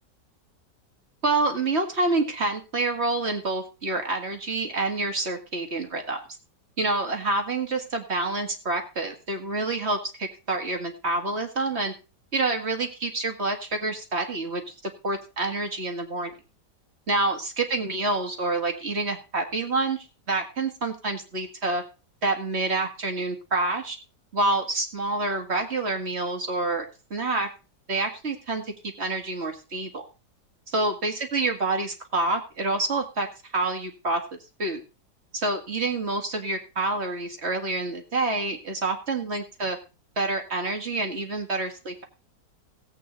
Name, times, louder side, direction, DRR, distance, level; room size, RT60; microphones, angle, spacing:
voice 1, 1.2-6.2 6.8-11.9 12.3-14.8 15.0-16.3 17.1-21.8 22.2-24.0 24.3-26.9 27.1-27.5 27.9-30.1 30.7-33.3 33.5-34.2 34.6-34.8 35.3-39.8 40.2-42.0, right 2 dB, 35° right, 5 dB, 2.1 m, -27 dB
17.0 x 8.4 x 4.0 m, 0.31 s
omnidirectional pair, 1.9 m